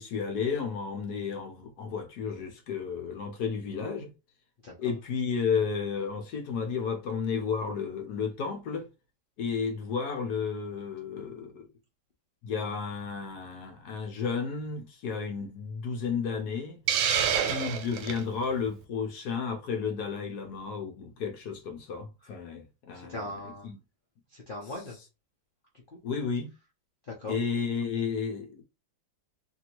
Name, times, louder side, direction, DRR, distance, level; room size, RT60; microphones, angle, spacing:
voice 1, 0.0-4.1 4.8-8.9 9.4-11.7 12.4-16.8 17.4-23.3 23.6-23.8 26.0-26.5 27.3-28.6, left 6 dB, 65° left, 1.0 m, -32 dB
Hiss, 16.9-18.2, right 8 dB, 85° right, 1.4 m, -27 dB
voice 2, 17.2-17.5 22.9-23.7 24.3-25.0 25.9-26.0 27.1-27.4, left 2 dB, 80° left, 0.4 m, -39 dB
2.9 x 2.7 x 2.9 m
omnidirectional pair, 2.1 m